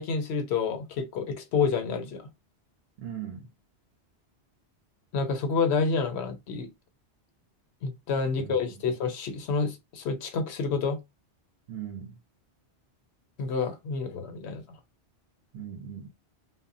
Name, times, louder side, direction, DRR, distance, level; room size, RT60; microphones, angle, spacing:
voice 1, 0.0-2.2 5.1-6.7 7.8-11.0 13.4-14.6, left 5 dB, 75° left, 0.9 m, -28 dB
voice 2, 3.0-3.5 8.4-8.6 11.7-12.2 15.5-16.1, right 9 dB, 70° right, 0.8 m, -39 dB
2.1 x 2.0 x 3.7 m
omnidirectional pair, 1.1 m